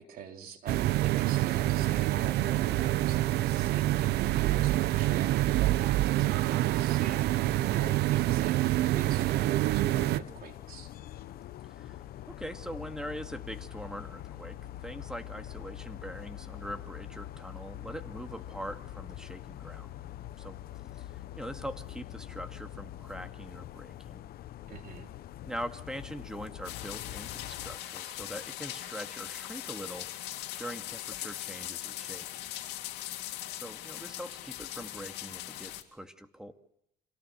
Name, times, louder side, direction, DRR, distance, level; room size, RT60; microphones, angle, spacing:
voice 1, 0.0-8.6 8.9-10.9 24.7-25.1, right 7 dB, 60° right, 4 dB, 3.9 m, -44 dB
sound 1, 0.7-10.2, right 15 dB, 75° right, 0.8 m, -26 dB
sound 2, 9.9-27.8, left 13 dB, 65° left, 0.9 m, -44 dB
voice 2, 11.7-19.9 20.4-20.6 21.0-24.2 25.4-30.1 30.6-32.4 33.5-36.5, equal, 5° right, 7 dB, 2.1 m, -42 dB
sound 3, 26.6-35.8, left 14 dB, 85° left, 2.5 m, -40 dB
27.0 x 18.0 x 6.5 m, 0.79 s
cardioid pair, 110°, 17 cm